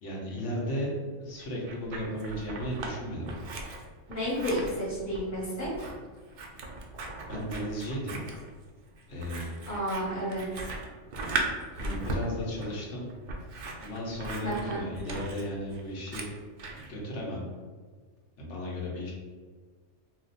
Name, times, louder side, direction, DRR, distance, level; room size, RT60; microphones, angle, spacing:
voice 1, 0.0-3.3 7.3-8.2 9.1-9.5 11.8-13.1 13.8-16.3 16.8-17.5 18.4-19.1, equal, 70° left, -3 dB, 1.1 m, -35 dB
Scissors, 1.4-2.9 3.2-16.9, right 2 dB, 65° right, 0.5 m, -38 dB
voice 2, 4.1-5.9 9.7-10.5 14.4-14.8, equal, 15° left, -7 dB, 1.1 m, -31 dB
2.5 x 2.3 x 3.9 m, 1.5 s
omnidirectional pair, 1.3 m